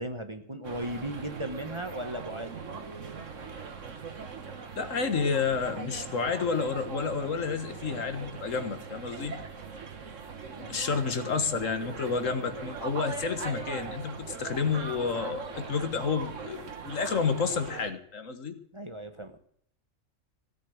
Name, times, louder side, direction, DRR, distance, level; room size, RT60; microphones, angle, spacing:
voice 1, 0.0-2.5 10.6-10.8 18.7-19.4, right 1 dB, 25° right, 7 dB, 1.1 m, -36 dB
sound 1, 0.6-17.9, right 5 dB, 70° right, 1.8 m, -40 dB
voice 2, 4.8-9.4 10.7-18.5, left 5 dB, 75° left, 9 dB, 1.8 m, -30 dB
16.5 x 8.3 x 7.8 m, 0.63 s
omnidirectional pair, 1.4 m